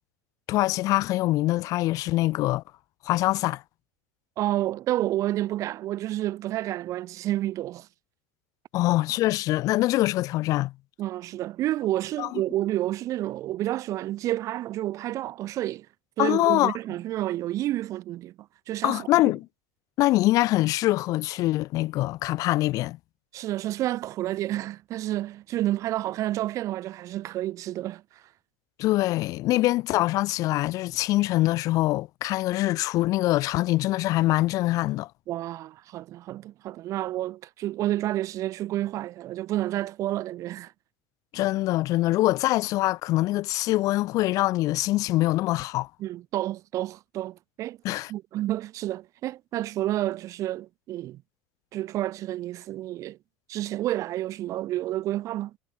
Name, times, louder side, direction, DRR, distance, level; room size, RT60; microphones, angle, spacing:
voice 1, 0.5-2.6 3.0-3.6 8.7-10.7 12.2-12.3 16.2-16.8 18.8-19.5 20.0-23.0 28.8-35.1 41.3-45.9 47.8-48.1, left 17 dB, 55° left, 4.6 m, -24 dB
voice 2, 4.4-7.9 11.0-15.9 16.2-19.1 23.3-28.2 35.3-40.7 46.0-47.8 48.1-51.2 51.7-53.2 53.5-55.5, right 14 dB, 50° right, 4.6 m, -30 dB
hypercardioid pair, 95°, 7 cm